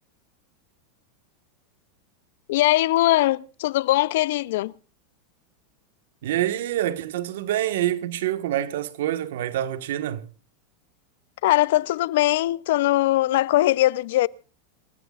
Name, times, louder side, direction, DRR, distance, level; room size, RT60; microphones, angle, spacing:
voice 1, 2.5-4.7 11.4-14.3, left 16 dB, 70° left, 0.6 m, -21 dB
voice 2, 6.2-10.2, right 12 dB, 80° right, 1.5 m, -26 dB
27.5 x 16.5 x 2.5 m
supercardioid pair, 145°, 0 cm